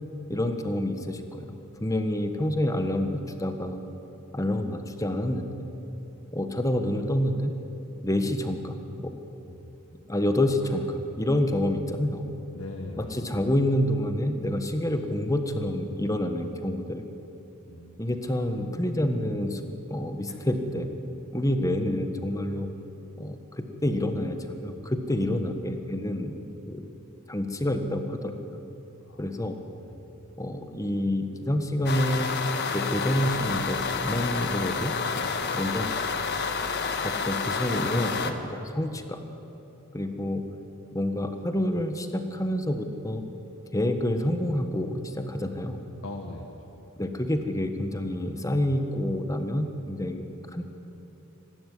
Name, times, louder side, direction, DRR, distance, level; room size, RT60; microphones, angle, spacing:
voice 1, 0.3-3.8 4.3-5.7 6.3-7.5 8.0-9.2 10.1-12.2 13.0-17.1 18.0-19.6 19.9-20.9 21.3-22.7 23.2-26.4 26.7-26.8 27.3-28.6 29.2-29.6 30.4-32.3 32.7-35.0 35.5-35.9 37.0-39.2 39.9-40.4 40.9-43.2 43.7-45.8 47.0-50.3 50.5-50.6, left 1 dB, 15° left, 7 dB, 1.5 m, -28 dB
voice 2, 12.5-13.4 17.7-18.0 20.3-20.4 29.0-29.3 29.9-30.1 40.0-40.3 46.0-46.8, left 2 dB, 70° left, 2 dB, 1.6 m, -41 dB
sound 1, 31.9-38.3, left 5 dB, 50° left, 1.4 m, -29 dB
24.5 x 12.5 x 9.6 m, 3.0 s
head